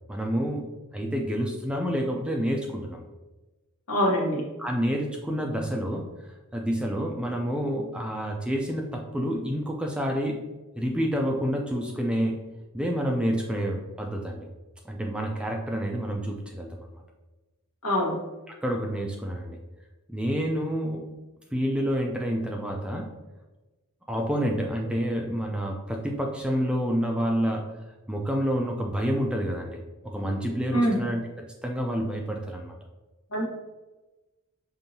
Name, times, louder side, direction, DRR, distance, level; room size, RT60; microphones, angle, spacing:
voice 1, 0.1-3.0 4.6-10.5 10.8-12.5 12.7-14.5 14.8-17.0 18.6-19.6 20.1-21.1 21.5-23.1 24.1-27.7 28.1-32.7, equal, 5° right, 1 dB, 0.3 m, -28 dB
voice 2, 3.9-4.4 17.8-18.1 30.7-31.0 33.3-33.4, equal, 90° left, -2 dB, 1.2 m, -24 dB
5.3 x 2.6 x 2.7 m, 1.1 s
head